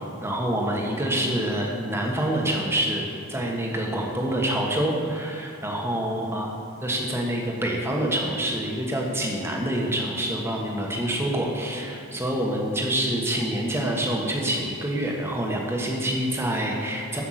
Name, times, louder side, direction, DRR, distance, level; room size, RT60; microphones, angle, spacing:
voice 1, 0.2-6.5 6.8-17.2, right 1 dB, 10° right, -1 dB, 1.4 m, -26 dB
14.0 x 5.7 x 5.9 m, 2.8 s
head